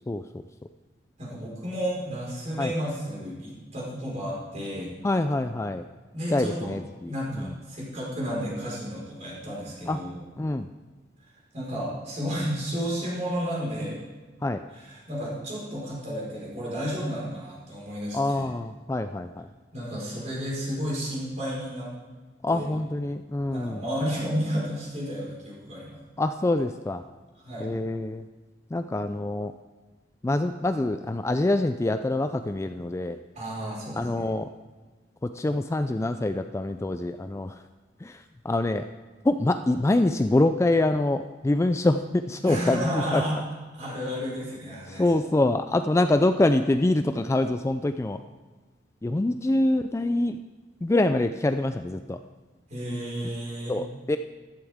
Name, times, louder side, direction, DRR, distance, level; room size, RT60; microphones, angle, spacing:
voice 1, 0.1-0.4 2.6-2.7 5.0-5.8 6.3-7.5 9.9-10.0 10.4-10.7 14.4-14.6 18.1-19.5 22.4-23.8 26.2-27.0 27.6-28.3 28.7-29.5 30.2-33.2 34.0-34.5 35.2-37.6 38.0-38.9 39.2-43.2 44.9-48.2 49.0-50.4 50.8-52.2 53.7-54.2, left 2 dB, 15° left, 8 dB, 0.3 m, -25 dB
voice 2, 1.2-4.9 6.1-6.7 7.0-10.2 11.5-14.0 14.9-18.5 19.7-21.9 22.5-22.6 23.5-26.0 27.4-27.7 33.3-34.3 42.4-43.4 43.7-45.1 52.7-53.8, equal, 40° right, -5 dB, 4.6 m, -32 dB
14.5 x 12.0 x 3.6 m, 1.3 s
head